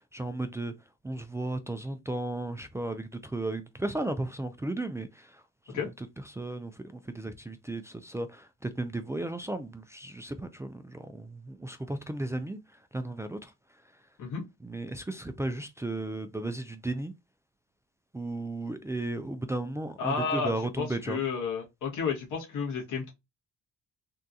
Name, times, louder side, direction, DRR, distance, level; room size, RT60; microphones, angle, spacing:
voice 1, 0.1-0.7 1.0-5.4 5.7-5.8 6.3-12.6 12.9-13.5 14.6-17.1 18.1-21.2, right 2 dB, 10° right, 0.4 m, -35 dB
voice 2, 20.0-23.1, left 5 dB, 80° left, 1.6 m, -32 dB
3.5 x 2.4 x 2.7 m
cardioid pair, 90°, 30 cm